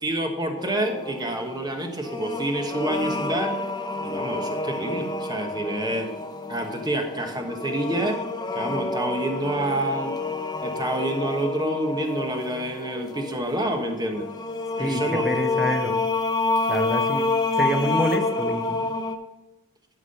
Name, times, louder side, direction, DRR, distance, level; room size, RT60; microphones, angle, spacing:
voice 1, 0.0-3.5 4.0-6.1 6.5-8.2 8.5-10.2 10.6-14.3 14.8-15.2, right 1 dB, 20° right, 3 dB, 1.3 m, -28 dB
sound 1, 0.6-19.2, left 3 dB, 20° left, 0.8 m, -29 dB
voice 2, 14.8-16.0 16.7-18.9, equal, ahead, 3 dB, 1.0 m, -27 dB
11.5 x 4.8 x 5.5 m, 1.0 s
head